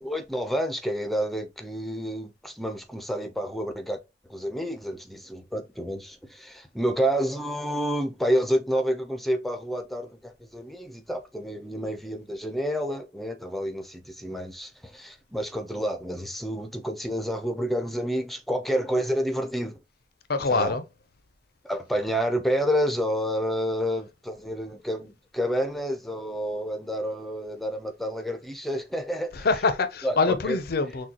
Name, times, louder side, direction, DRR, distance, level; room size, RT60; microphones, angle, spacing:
voice 1, 0.0-4.0 4.2-19.8 20.5-20.8 21.6-29.5 30.0-30.6, equal, ahead, 0.6 m, -29 dB
voice 2, 20.3-20.8 29.4-31.1, left 4 dB, 55° left, 0.6 m, -24 dB
6.1 x 2.3 x 2.9 m
head